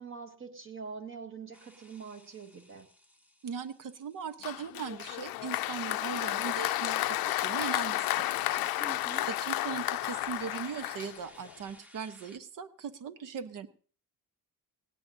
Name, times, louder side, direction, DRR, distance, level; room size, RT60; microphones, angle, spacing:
voice 1, 0.0-2.9 8.8-9.3, right 5 dB, 35° right, 5 dB, 1.8 m, -44 dB
sound 1, 1.5-12.4, left 1 dB, 5° right, 1.1 m, -58 dB
voice 2, 3.4-8.7 9.2-13.7, right 6 dB, 55° right, 11 dB, 1.1 m, -39 dB
Applause, 4.4-11.5, left 15 dB, 70° left, 0.6 m, -32 dB
19.0 x 17.0 x 2.7 m, 0.41 s
cardioid pair, 115°, 37 cm